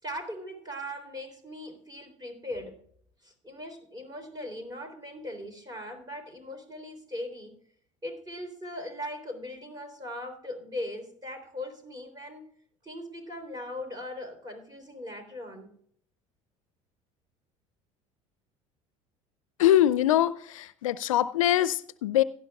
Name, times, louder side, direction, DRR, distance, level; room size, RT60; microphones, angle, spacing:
voice 1, 0.0-2.8 3.2-7.5 8.0-12.4 12.8-15.7, left 1 dB, 25° right, 6 dB, 3.7 m, -39 dB
voice 2, 19.6-22.2, left 12 dB, 80° left, 18 dB, 0.5 m, -23 dB
17.0 x 11.5 x 2.3 m, 0.62 s
hypercardioid pair, 65°, 17 cm